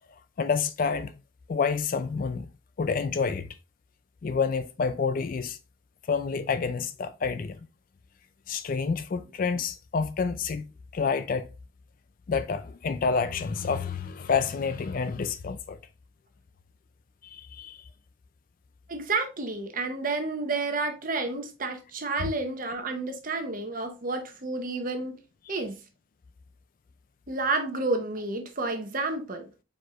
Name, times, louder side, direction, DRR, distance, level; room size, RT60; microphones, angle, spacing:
voice 1, 0.4-1.1 1.5-2.5 2.8-3.6 4.2-5.6 6.1-7.6 8.5-10.7 10.9-11.5 12.3-15.8 17.2-17.8 25.5-25.6, left 5 dB, 40° left, 0.3 m, -28 dB
voice 2, 18.9-25.2 25.5-25.8 27.3-29.5, right 3 dB, 40° right, 0.8 m, -30 dB
4.6 x 4.5 x 2.4 m
head